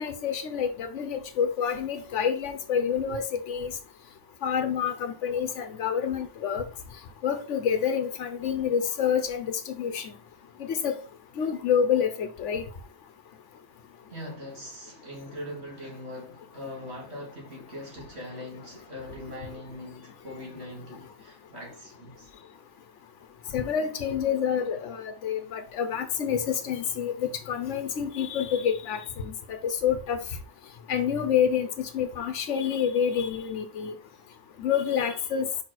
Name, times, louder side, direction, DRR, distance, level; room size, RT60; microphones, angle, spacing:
voice 1, 0.0-3.7 4.4-6.6 7.2-10.1 10.7-10.9 11.4-12.6 23.5-30.2 30.9-33.9 34.6-35.5, left 8 dB, 85° left, 1.2 m, -28 dB
voice 2, 14.1-22.3, left 1 dB, 60° right, 2.7 m, -41 dB
5.4 x 4.6 x 4.1 m
omnidirectional pair, 1.2 m